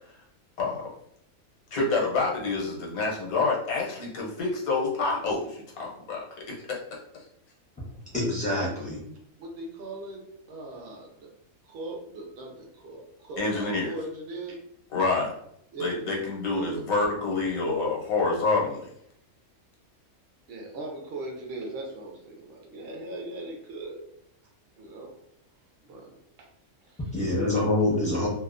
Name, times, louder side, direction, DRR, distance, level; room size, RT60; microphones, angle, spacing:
voice 1, 1.7-6.2 13.0-13.1 13.4-13.9 14.9-15.3 15.8-18.9, left 3 dB, 85° left, -2 dB, 1.2 m, -27 dB
voice 2, 8.1-9.0 27.1-28.3, left 2 dB, 10° left, -6 dB, 0.4 m, -25 dB
voice 3, 9.4-11.3 11.6-14.6 15.7-15.9 16.5-16.9 20.5-24.0 24.8-25.2 25.8-26.1 26.4-26.5 26.9-27.0, right 2 dB, 55° right, 0 dB, 0.7 m, -39 dB
2.7 x 2.0 x 2.4 m, 0.72 s
omnidirectional pair, 1.4 m